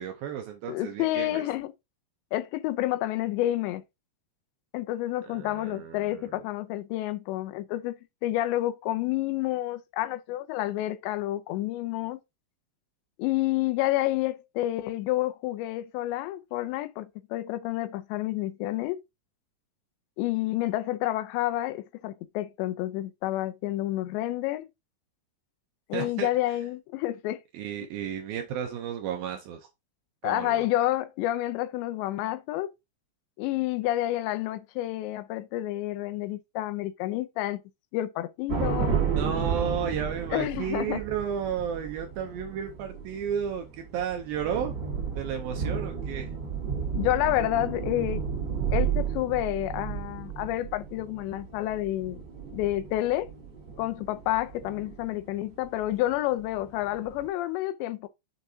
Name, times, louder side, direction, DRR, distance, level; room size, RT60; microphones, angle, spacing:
voice 1, 0.0-1.4 5.2-6.3 25.9-26.3 27.5-29.7 30.2-30.6 39.2-44.7 45.1-46.3, right 8 dB, 80° right, 2.1 m, -33 dB
voice 2, 0.7-1.7 2.3-3.8 4.7-12.2 13.2-19.0 20.2-24.7 25.9-27.4 30.2-32.7 33.4-37.6 37.9-39.0 40.3-41.0 46.9-48.2 48.7-52.2 52.5-53.3 53.8-58.1, left 15 dB, 80° left, 2.9 m, -29 dB
sound 1, 38.5-56.1 56.5-57.3, right 7 dB, 30° right, 2.7 m, -33 dB
7.3 x 6.4 x 2.8 m
omnidirectional pair, 5.1 m